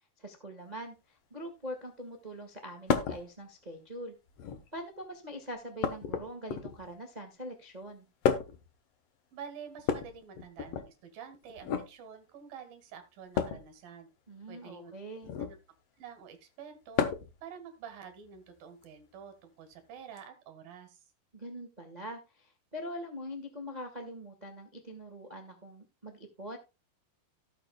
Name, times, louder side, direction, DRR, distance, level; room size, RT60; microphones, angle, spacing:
voice 1, 0.2-4.1 4.7-8.1 14.3-15.3 21.3-26.6, equal, 50° right, 5 dB, 0.5 m, -43 dB
sound 1, 2.9-3.2 4.3-4.8 5.8-6.9 8.2-8.7 9.8-10.9 11.6-11.9 13.3-13.7 15.2-15.6 17.0-17.4 18.8-18.9 20.2-20.3, left 7 dB, 65° left, 1.6 m, -31 dB
voice 2, 9.3-14.1 14.5-14.9 15.4-15.6 16.0-17.0 17.4-21.0, right 7 dB, 70° right, 7 dB, 3.7 m, -48 dB
18.0 x 6.8 x 2.3 m, 0.27 s
omnidirectional pair, 4.3 m